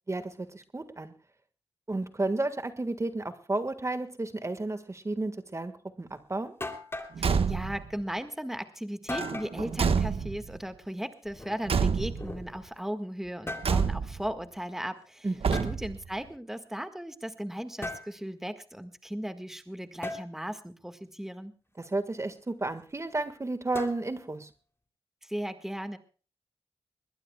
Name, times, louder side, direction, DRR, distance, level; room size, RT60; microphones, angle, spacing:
voice 1, 0.1-1.1 1.9-5.7 6.0-6.5 15.2-15.7 21.8-24.5, right 2 dB, 30° right, 10 dB, 1.6 m, -32 dB
sound 1, 6.1-6.2 6.6-7.2 9.1-9.6 11.2-12.7 13.2-13.8 15.5-15.7 17.8-18.1 20.0-20.3 23.7-24.3, left 2 dB, 25° left, 3.1 m, -38 dB
Car / Truck / Slam, 7.1-7.9 9.1-10.6 11.6-12.4 13.6-14.3 15.4-16.1, right 5 dB, 70° right, 1.3 m, -28 dB
voice 2, 7.2-21.5 25.2-26.0, equal, 5° right, 9 dB, 1.7 m, -37 dB
20.5 x 20.5 x 2.3 m, 0.36 s
cardioid pair, 60°, 10 cm